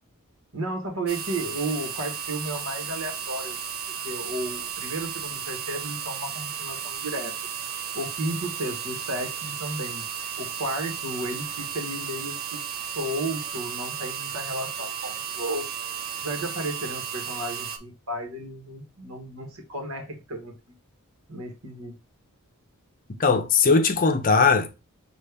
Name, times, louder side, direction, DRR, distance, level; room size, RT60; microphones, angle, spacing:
voice 1, 0.5-3.6 4.0-7.4 7.9-10.0 10.4-12.6 12.9-15.7 16.2-20.8 21.3-21.9, right 1 dB, 70° right, 1.3 m, -33 dB
sound 1, 1.1-17.8, right 7 dB, 45° right, 0.5 m, -34 dB
voice 2, 23.2-24.7, left 4 dB, 40° left, 0.6 m, -19 dB
5.3 x 2.5 x 3.4 m
head